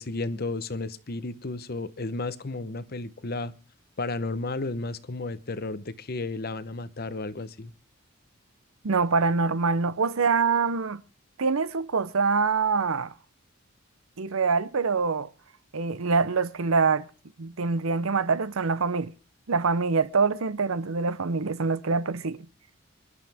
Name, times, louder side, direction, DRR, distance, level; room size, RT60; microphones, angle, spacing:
voice 1, 0.0-3.5 4.0-7.7, left 2 dB, 50° left, 0.9 m, -33 dB
voice 2, 8.8-11.0 11.4-13.1 14.2-15.3 15.7-17.0 17.4-19.1 19.5-22.5, right 4 dB, 80° right, 0.7 m, -25 dB
24.5 x 11.5 x 3.5 m
head